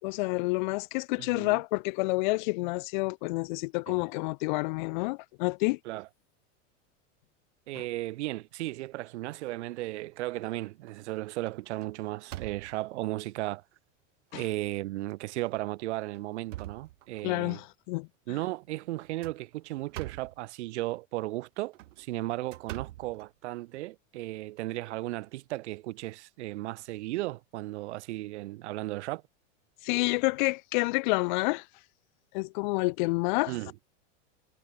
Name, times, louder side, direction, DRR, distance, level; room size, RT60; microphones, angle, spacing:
voice 1, 0.0-5.8 14.3-14.4 17.2-18.4 29.8-31.6 32.3-33.5, left 26 dB, 40° left, 0.6 m, -29 dB
voice 2, 1.2-1.6 3.9-4.0 5.8-6.1 7.7-13.6 14.3-17.6 18.3-29.2 33.5-33.7, right 18 dB, 65° right, 1.4 m, -35 dB
sound 1, 9.9-10.4 10.9-11.1 11.5-13.0 13.7-13.8 14.3-14.4 15.3-15.5 16.0-17.5 19.0-20.4 21.6-23.8, right 15 dB, 85° right, 1.4 m, -44 dB
supercardioid pair, 165°, 37 cm